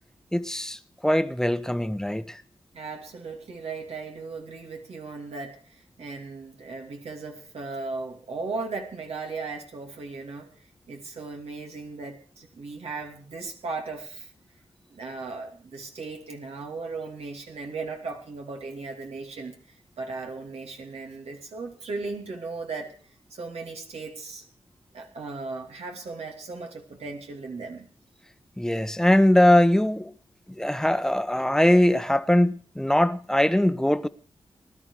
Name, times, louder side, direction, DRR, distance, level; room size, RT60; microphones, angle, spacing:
voice 1, 0.3-2.4 28.6-30.1 30.6-34.1, left 1 dB, 5° left, 1.0 m, -21 dB
voice 2, 2.7-10.5 10.9-14.3 14.9-19.5 20.0-22.9 23.3-24.4 24.9-27.9, right 3 dB, 85° right, 2.8 m, -37 dB
19.5 x 12.0 x 4.9 m
cardioid pair, 60°, 10 cm